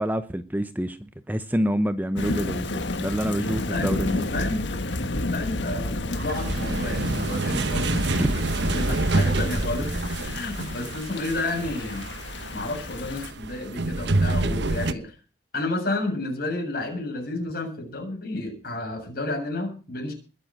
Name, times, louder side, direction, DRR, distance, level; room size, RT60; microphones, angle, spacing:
voice 1, 0.0-4.3 8.1-8.3, equal, 10° right, 11 dB, 0.8 m, -27 dB
Thunder / Rain, 2.2-13.3, left 2 dB, 70° left, 1.7 m, -31 dB
voice 2, 3.4-4.8 5.3-9.9 10.2-12.1 12.5-15.2 15.5-20.1, left 2 dB, 55° left, 2 dB, 7.5 m, -31 dB
sound 1, 6.1-14.9, right 2 dB, 65° right, 1.1 m, -27 dB
21.5 x 7.8 x 7.8 m, 0.38 s
head